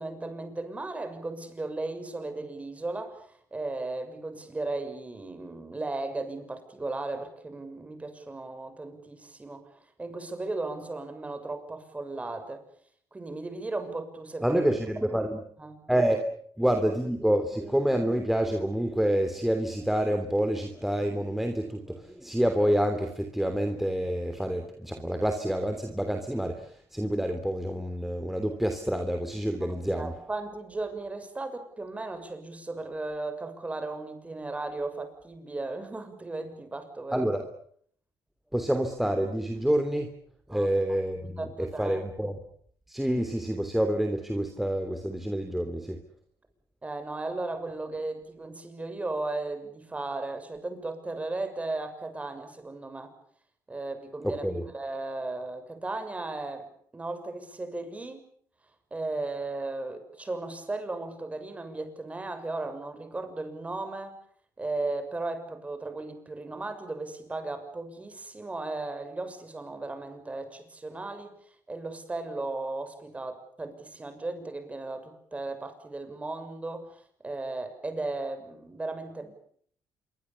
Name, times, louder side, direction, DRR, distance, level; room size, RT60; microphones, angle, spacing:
voice 1, 0.0-9.7 10.0-12.6 13.1-14.6 15.6-15.8 29.7-37.2 40.5-42.0 46.8-53.1 53.7-58.3 58.9-64.1 64.6-79.3, right 2 dB, 20° right, 8 dB, 6.6 m, -36 dB
voice 2, 14.4-15.4 15.9-16.3 16.6-30.2 37.1-37.5 38.5-40.1 40.5-42.4 42.9-46.0 54.2-54.6, right 1 dB, 5° right, 5 dB, 3.1 m, -28 dB
27.0 x 23.5 x 7.2 m, 0.63 s
cardioid pair, 95°, 7 cm